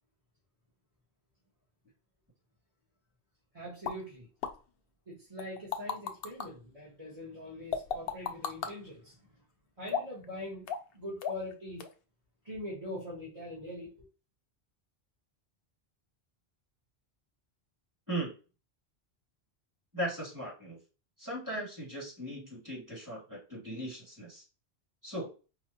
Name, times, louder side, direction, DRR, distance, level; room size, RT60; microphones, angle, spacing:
voice 1, 3.5-4.3 5.1-9.4 9.8-11.8 12.4-13.9, left 1 dB, 35° right, 1.6 m, -43 dB
sound 1, 3.8-4.0 4.4-4.5 5.4-6.5 7.7-8.7 9.9-10.2 10.7-10.9 11.2-11.5 11.8-11.9, left 7 dB, 70° left, 0.8 m, -34 dB
voice 2, 19.9-20.8 21.2-24.4 25.0-25.3, right 1 dB, 15° right, 2.3 m, -38 dB
4.8 x 2.4 x 2.8 m
omnidirectional pair, 1.1 m